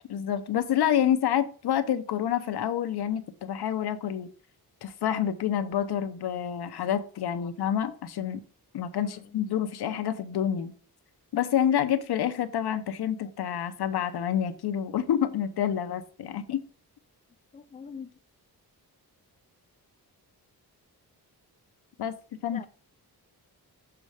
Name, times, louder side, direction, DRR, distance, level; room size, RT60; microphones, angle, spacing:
voice 1, 0.1-4.3 4.8-8.4 8.7-10.7 11.3-16.6 22.0-22.1 22.4-22.6, left 9 dB, 90° left, 0.8 m, -28 dB
voice 2, 9.0-9.3 17.5-18.1 22.5-22.7, left 6 dB, 20° left, 0.4 m, -43 dB
6.9 x 4.2 x 4.9 m
wide cardioid pair, 165°, 38 cm